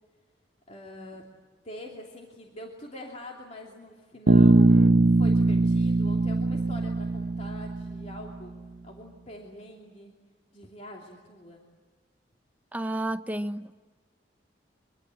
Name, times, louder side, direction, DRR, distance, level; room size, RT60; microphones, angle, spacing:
voice 1, 0.7-1.2 1.6-8.5 8.8-10.1 10.5-11.6, left 1 dB, 40° left, 2.8 m, -44 dB
Bass guitar, 4.3-8.3, right 2 dB, 65° right, 0.9 m, -21 dB
voice 2, 12.7-13.8, right 1 dB, 10° right, 0.8 m, -31 dB
24.5 x 24.5 x 7.7 m
head